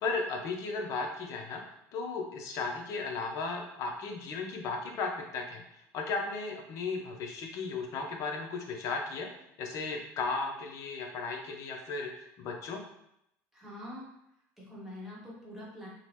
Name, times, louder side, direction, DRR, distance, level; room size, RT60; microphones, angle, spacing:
voice 1, 0.0-1.6 1.9-9.3 9.6-12.1 12.4-12.8, left 4 dB, 55° left, 3 dB, 0.6 m, -35 dB
voice 2, 13.5-14.1 14.6-15.9, left 1 dB, 5° right, -6 dB, 1.0 m, -44 dB
2.7 x 2.1 x 3.2 m, 0.79 s
supercardioid pair, 110°, 7 cm